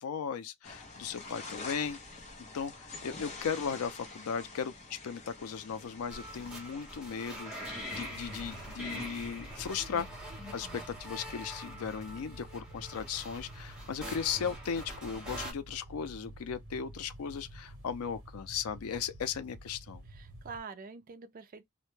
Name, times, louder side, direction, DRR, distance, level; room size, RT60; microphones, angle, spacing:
voice 1, 0.0-2.0 2.5-10.1 10.5-20.0, left 7 dB, 90° left, 0.4 m, -37 dB
sound 1, 0.6-9.8, left 3 dB, 30° left, 0.6 m, -48 dB
sound 2, 6.1-15.5, equal, 5° right, 0.7 m, -44 dB
sound 3, 7.9-20.6, right 1 dB, 60° right, 0.8 m, -50 dB
voice 2, 10.6-10.9 20.1-21.7, right 5 dB, 40° right, 0.3 m, -46 dB
2.1 x 2.1 x 3.0 m
head